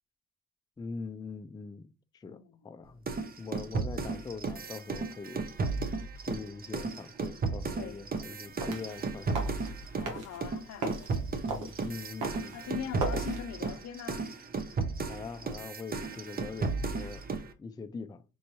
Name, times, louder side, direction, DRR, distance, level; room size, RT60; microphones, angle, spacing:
voice 1, 0.8-2.4 2.6-3.0 3.4-5.4 6.2-9.6 11.4-12.6 15.0-17.2 17.6-18.2, left 4 dB, 15° left, 0.3 m, -42 dB
voice 2, 2.3-2.7 7.7-8.0 9.9-11.2 12.5-14.3, left 9 dB, 60° left, 0.6 m, -42 dB
sound 1, 3.1-10.1 10.4-17.5, right 4 dB, 30° right, 0.7 m, -34 dB
sound 2, 8.4-13.4, right 3 dB, 85° right, 1.3 m, -39 dB
5.4 x 2.6 x 3.0 m
cardioid pair, 90°, 30 cm